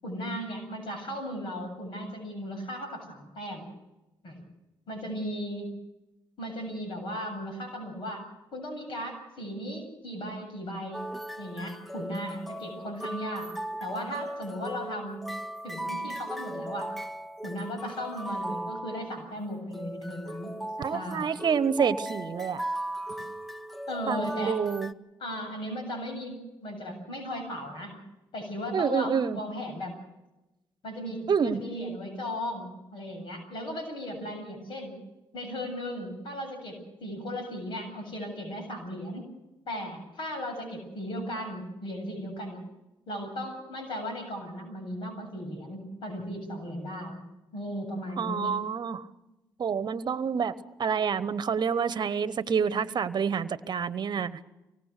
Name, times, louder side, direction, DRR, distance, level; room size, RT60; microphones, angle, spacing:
voice 1, 0.0-3.7 4.2-4.4 4.9-5.7 6.4-8.2 8.5-11.0 11.4-13.5 13.8-15.2 15.6-16.9 17.4-20.5 20.9-21.4 23.9-24.6 25.2-28.0 28.3-29.9 30.8-35.0 35.3-39.3 39.7-42.6 43.1-47.2 47.5-48.5, equal, 65° left, 4 dB, 7.7 m, -36 dB
sound 1, 10.9-24.9, right 1 dB, ahead, 0.9 m, -37 dB
voice 2, 20.8-22.6 24.1-24.9 28.7-29.4 31.3-31.6 48.2-49.1 49.6-54.4, right 6 dB, 50° right, 15 dB, 1.1 m, -28 dB
25.5 x 19.0 x 6.7 m, 0.99 s
supercardioid pair, 60°, 9 cm